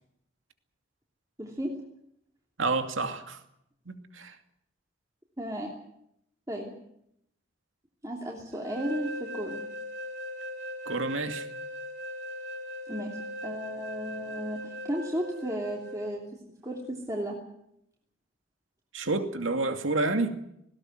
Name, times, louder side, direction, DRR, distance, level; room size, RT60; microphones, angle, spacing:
voice 1, 1.4-1.8 5.4-5.7 6.5-6.7 8.0-9.6 12.9-17.4, equal, 15° right, -1 dB, 3.0 m, -34 dB
voice 2, 2.6-3.4 3.9-4.4 10.9-11.5 18.9-20.4, right 3 dB, 90° right, 6 dB, 2.5 m, -29 dB
sound 1, 8.5-16.1, equal, 70° right, 4.7 m, -39 dB
19.5 x 17.5 x 9.4 m, 0.75 s
head